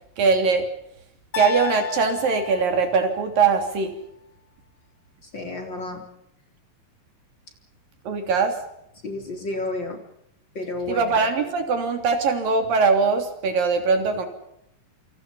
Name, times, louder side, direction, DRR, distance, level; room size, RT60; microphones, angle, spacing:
voice 1, 0.2-0.7 1.3-3.9 8.0-8.6 10.9-14.3, right 4 dB, 70° right, 6 dB, 4.8 m, -21 dB
sound 1, 1.3-3.5, left 8 dB, 80° left, 1.1 m, -33 dB
voice 2, 5.2-6.0 9.0-10.0 10.5-11.1, left 2 dB, 30° left, 4 dB, 4.3 m, -31 dB
28.0 x 27.5 x 5.4 m, 0.75 s
omnidirectional pair, 4.1 m